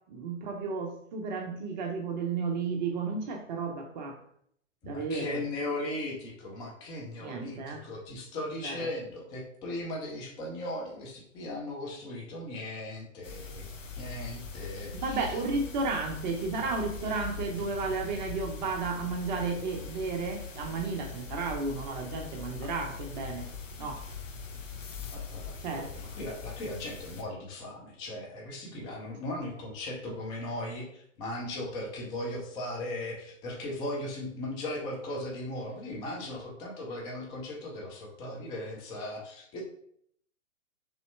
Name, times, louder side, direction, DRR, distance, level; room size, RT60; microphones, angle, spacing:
voice 1, 0.1-4.2 4.8-5.4 7.2-7.8 8.6-8.9 14.9-23.5 23.8-24.0 25.6-25.9, right 4 dB, 35° right, 1 dB, 0.6 m, -33 dB
voice 2, 4.8-13.7 13.9-15.4 24.7-25.4 25.8-39.6, left 1 dB, 10° left, -2 dB, 0.4 m, -38 dB
sound 1, 13.2-27.2, left 5 dB, 70° left, 0.8 m, -41 dB
4.1 x 3.1 x 3.1 m, 0.68 s
figure-of-eight pair, 115°, 39 cm